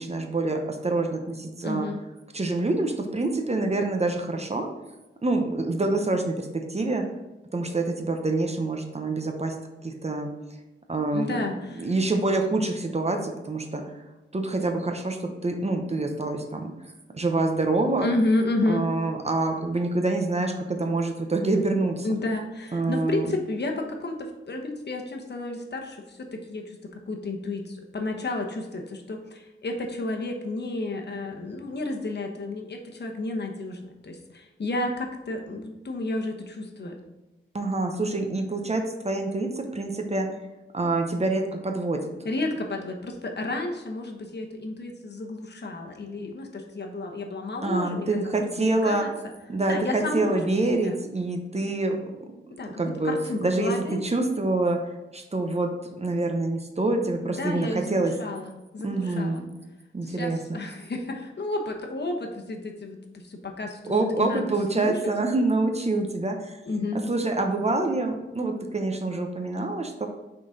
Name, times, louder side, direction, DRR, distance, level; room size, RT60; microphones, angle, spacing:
voice 1, 0.0-1.9 2.3-4.7 5.2-7.1 7.5-9.5 9.8-10.3 10.9-11.4 11.7-13.8 14.3-16.7 17.1-18.1 18.6-22.1 22.7-23.3 37.5-40.4 40.7-42.3 47.6-49.1 49.5-52.4 52.8-53.2 53.4-58.1 58.8-59.5 59.9-60.6 63.8-66.6 66.9-70.1, right 2 dB, 30° right, 4 dB, 0.8 m, -26 dB
voice 2, 1.6-2.0 11.1-11.9 18.0-18.8 22.0-37.0 42.2-48.1 48.6-49.1 49.7-50.4 50.8-50.9 52.6-52.7 53.0-54.0 57.4-59.4 60.0-63.9 64.2-64.9 66.7-67.0, left 2 dB, 55° left, 2 dB, 1.0 m, -31 dB
6.0 x 3.9 x 4.0 m, 1.0 s
wide cardioid pair, 75°, 21 cm